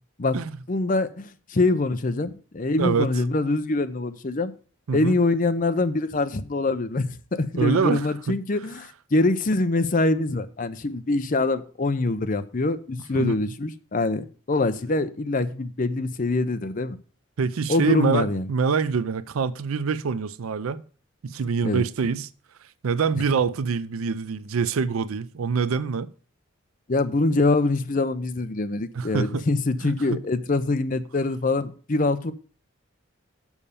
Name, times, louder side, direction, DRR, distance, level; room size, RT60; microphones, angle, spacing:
voice 1, 0.7-4.5 4.9-17.0 17.7-18.5 21.6-21.8 26.9-32.3, left 2 dB, 40° left, 0.6 m, -24 dB
voice 2, 7.6-8.4 13.1-13.4 17.4-20.8 21.2-22.3 22.8-26.1 28.9-29.4 29.8-30.2, right 5 dB, 90° right, 0.5 m, -25 dB
7.2 x 5.5 x 6.8 m
head